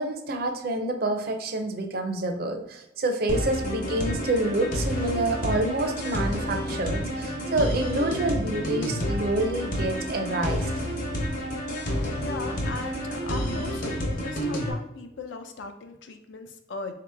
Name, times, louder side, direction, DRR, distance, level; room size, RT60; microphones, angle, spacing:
voice 1, 0.0-10.7, right 2 dB, 55° right, 5 dB, 0.5 m, -28 dB
sound 1, 3.3-14.7, equal, 45° left, 0.8 m, -29 dB
voice 2, 12.2-16.9, left 3 dB, 85° left, 7 dB, 0.5 m, -38 dB
3.9 x 2.9 x 3.4 m, 0.90 s
head